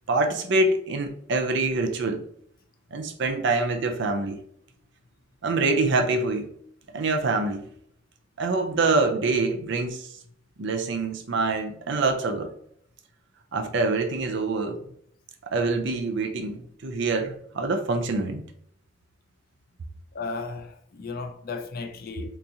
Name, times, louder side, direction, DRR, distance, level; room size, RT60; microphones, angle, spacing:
voice 1, 0.1-2.2 2.9-4.4 5.4-6.5 6.9-7.6 8.4-10.1 10.6-12.5 13.5-14.8 15.5-18.4, right 3 dB, 60° right, 0.5 m, -25 dB
voice 2, 20.1-22.4, left 4 dB, 45° left, 0.4 m, -35 dB
3.5 x 2.9 x 2.6 m
head